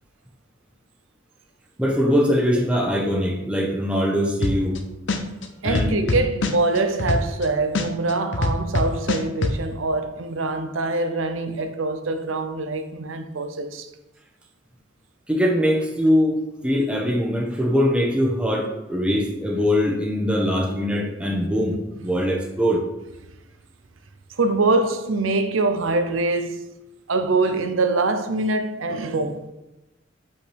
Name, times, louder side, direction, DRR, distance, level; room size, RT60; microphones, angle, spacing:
voice 1, 1.8-4.8 5.6-6.1 15.3-16.4 16.6-22.8, equal, 5° right, 1.1 m, -22 dB
sound 1, 4.4-4.8 5.1-7.4 7.7-9.5, left 2 dB, 65° left, 0.7 m, -23 dB
voice 2, 5.6-13.9 24.3-26.7 27.1-29.5, right 3 dB, 80° right, 0.7 m, -24 dB
7.9 x 5.4 x 3.5 m
head